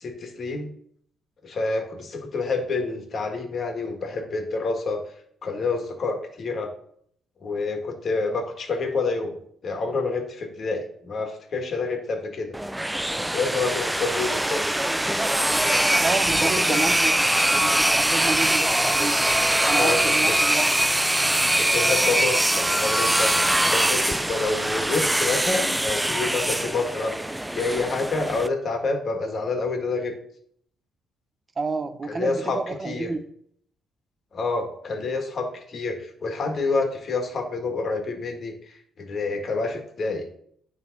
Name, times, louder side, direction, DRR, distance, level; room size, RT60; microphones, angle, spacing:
voice 1, 0.0-0.7 1.4-5.0 5.4-6.7 7.4-9.4 9.6-12.5 13.2-14.6 19.7-20.0 21.5-23.3 23.7-27.1 27.5-30.1 32.1-33.1 34.3-40.2, left 3 dB, 50° left, 1.7 m, -28 dB
sound 1, 12.5-28.5, right 1 dB, 5° right, 0.3 m, -22 dB
voice 2, 16.0-19.3 19.6-20.7 31.6-33.2, right 3 dB, 35° right, 0.7 m, -30 dB
9.2 x 3.5 x 4.0 m
cardioid pair, 90°, 0 cm